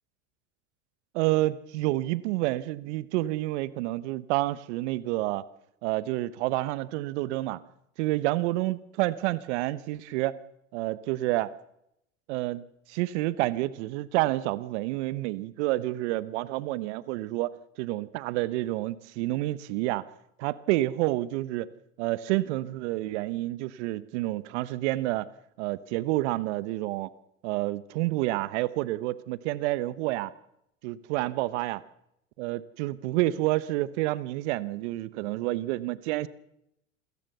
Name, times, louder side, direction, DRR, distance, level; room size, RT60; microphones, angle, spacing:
voice 1, 1.1-5.4 5.8-7.6 8.0-10.4 10.7-11.5 12.3-20.1 20.4-21.7 22.0-25.3 25.6-27.1 27.4-30.3 30.8-31.8 32.4-36.3, right 17 dB, 65° right, 17 dB, 1.1 m, -29 dB
27.5 x 16.5 x 6.8 m, 0.81 s
hypercardioid pair, 90°, 37 cm